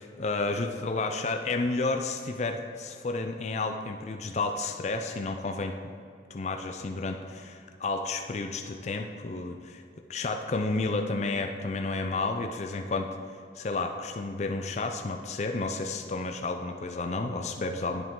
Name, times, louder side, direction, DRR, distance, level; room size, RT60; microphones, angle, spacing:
voice 1, 0.0-5.8 6.3-9.8 10.1-13.1 13.5-18.1, left 3 dB, 35° left, 4 dB, 0.4 m, -31 dB
10.0 x 7.6 x 3.7 m, 2.6 s
head